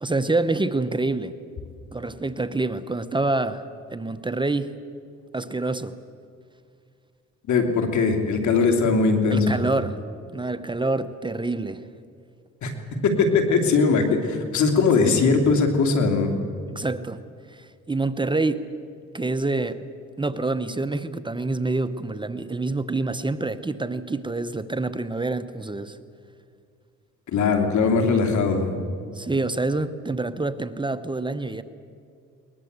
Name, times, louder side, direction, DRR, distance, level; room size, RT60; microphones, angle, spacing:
voice 1, 0.0-1.3 1.9-3.6 3.9-4.7 5.3-6.0 9.3-10.0 10.3-11.8 15.0-15.2 16.7-17.2 17.5-18.7 19.1-19.9 20.2-26.0 29.1-31.6, right 2 dB, 15° right, 11 dB, 0.9 m, -27 dB
voice 2, 7.5-9.7 12.6-12.7 13.0-16.3 27.3-28.8, left 4 dB, 70° left, 4 dB, 3.0 m, -20 dB
21.5 x 20.5 x 8.2 m, 2.3 s
cardioid pair, 90°, 30 cm